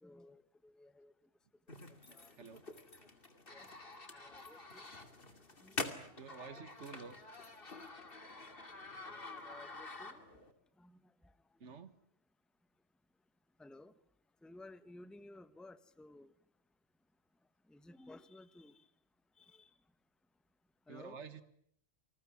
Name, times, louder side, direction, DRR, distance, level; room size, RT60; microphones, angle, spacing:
voice 1, 0.0-1.1 1.7-1.8 2.1-2.3 3.5-3.6 4.1-4.9 5.6-6.2 9.1-10.2 10.8-11.0 13.6-13.9 14.4-16.3 17.7-18.8 19.4-19.7 20.9-21.2, left 2 dB, ahead, 14 dB, 1.0 m, -56 dB
sound 1, 1.7-10.5, left 3 dB, 50° left, 2.7 m, -47 dB
voice 2, 2.4-2.7 6.2-7.2 11.6-12.0 20.9-21.4, right 5 dB, 75° right, 13 dB, 1.9 m, -50 dB
28.5 x 20.5 x 9.8 m, 0.66 s
omnidirectional pair, 1.2 m